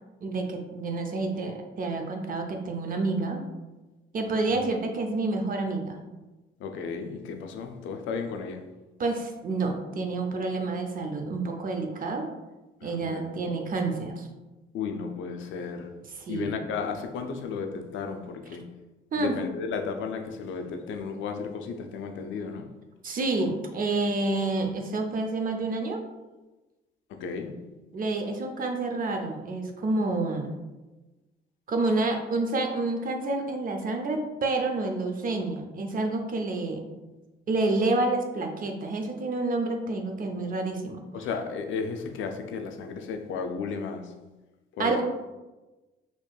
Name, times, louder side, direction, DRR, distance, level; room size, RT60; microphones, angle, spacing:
voice 1, 0.2-3.4 4.1-6.0 9.0-12.3 12.8-14.3 16.3-16.5 19.1-19.4 23.0-26.0 27.9-30.5 31.7-36.8 37.5-41.0 44.8-45.0, right 2 dB, 45° right, 4 dB, 0.6 m, -28 dB
voice 2, 6.6-8.7 12.8-13.4 14.7-15.9 16.3-18.7 19.2-22.7 27.1-27.7 41.1-44.2 44.8-45.0, left 5 dB, 75° left, 5 dB, 0.5 m, -34 dB
4.3 x 2.9 x 2.3 m, 1.1 s
cardioid pair, 90°, 20 cm